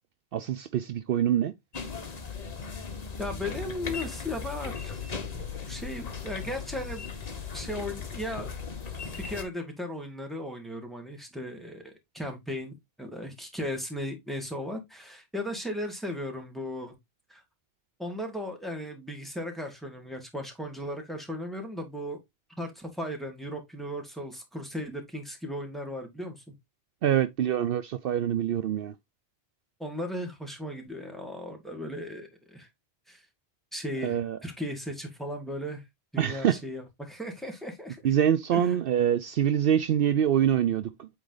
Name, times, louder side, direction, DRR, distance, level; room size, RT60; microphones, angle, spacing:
voice 1, 0.3-1.5 27.0-28.9 34.0-34.4 36.2-36.6 38.0-41.1, right 10 dB, 70° right, 0.7 m, -25 dB
sound 1, 1.7-9.4, left 5 dB, 40° left, 1.1 m, -37 dB
voice 2, 3.2-4.9 5.7-7.1 7.5-8.5 9.3-17.0 17.3-17.4 18.0-22.2 22.6-26.5 29.8-32.7 33.1-33.2 33.7-35.8 36.1-38.0 38.5-38.8, left 1 dB, ahead, 1.8 m, -36 dB
8.2 x 3.3 x 3.8 m
omnidirectional pair, 1.0 m